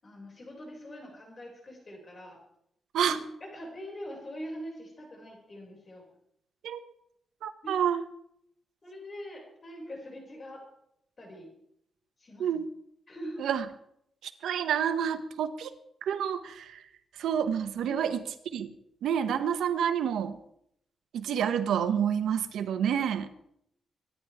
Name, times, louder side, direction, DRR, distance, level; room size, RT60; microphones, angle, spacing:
voice 1, 0.0-2.4 3.0-6.0 7.6-7.8 8.8-10.6 11.2-11.5 12.2-12.6 13.1-13.5 17.8-18.1 22.8-23.0, equal, 35° left, -1 dB, 6.3 m, -43 dB
voice 2, 7.4-8.0 12.4-12.6 13.4-13.6 14.2-15.7 16.0-16.8 17.2-18.2 18.5-18.7 19.0-20.4 21.1-23.3, right 8 dB, 90° right, 10 dB, 1.1 m, -28 dB
24.5 x 10.5 x 3.6 m, 0.74 s
cardioid pair, 115°, 0 cm